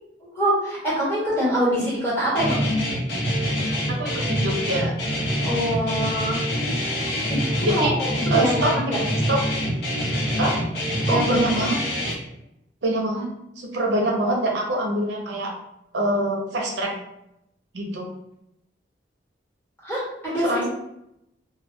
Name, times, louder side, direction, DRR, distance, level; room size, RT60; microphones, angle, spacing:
voice 1, 0.3-2.6 5.4-6.4 7.3-7.4 7.7-9.0 11.1-11.4 19.8-20.7, equal, 10° left, -8 dB, 1.3 m, -24 dB
Guitar, 2.4-12.1, equal, 65° left, 0.8 m, -25 dB
voice 2, 3.9-4.9 7.6-8.0 8.3-8.9 9.3-9.4 10.4-10.5 11.1-11.8 12.8-13.3 13.6-15.5 15.9-16.9 17.7-18.1 20.4-20.6, right 1 dB, 80° right, -1 dB, 0.6 m, -24 dB
2.3 x 2.2 x 3.4 m, 0.81 s
head